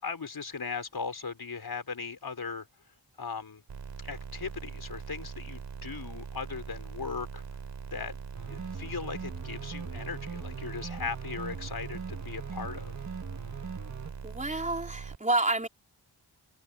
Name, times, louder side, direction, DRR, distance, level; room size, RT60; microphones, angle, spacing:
voice 1, 0.0-2.7 3.2-3.6 4.0-7.4 7.9-8.2 8.5-12.9, left 5 dB, 60° left, 5.6 m, -38 dB
sound 1, 3.7-15.2, right 6 dB, 75° right, 4.1 m, -42 dB
sound 2, 8.3-14.1, right 5 dB, 40° right, 1.9 m, -41 dB
voice 2, 14.2-15.7, right 2 dB, 15° right, 3.8 m, -29 dB
open air
cardioid pair, 60°, 42 cm